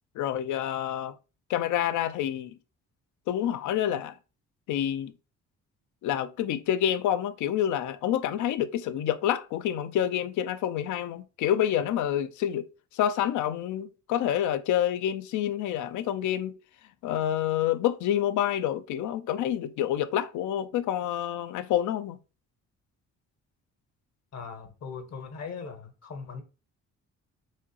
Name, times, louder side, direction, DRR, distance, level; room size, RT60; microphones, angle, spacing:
voice 1, 0.2-1.1 1.5-2.6 3.3-4.2 4.7-5.1 6.0-12.7 12.9-16.5 17.0-22.2, left 11 dB, 75° left, 0.5 m, -28 dB
voice 2, 24.3-26.4, left 5 dB, 60° left, 1.2 m, -39 dB
4.8 x 3.1 x 2.8 m
cardioid pair, 90°, 30 cm